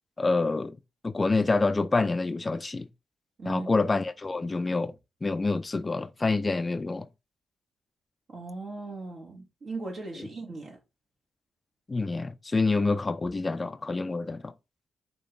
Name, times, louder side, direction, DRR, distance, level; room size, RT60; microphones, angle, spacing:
voice 1, 0.2-0.8 1.0-2.9 3.5-4.9 5.2-7.1 11.9-14.5, left 3 dB, 30° left, 0.4 m, -27 dB
voice 2, 3.4-3.7 8.3-10.8, right 3 dB, 60° right, 2.1 m, -38 dB
5.1 x 2.9 x 3.5 m
cardioid pair, 60°, 0 cm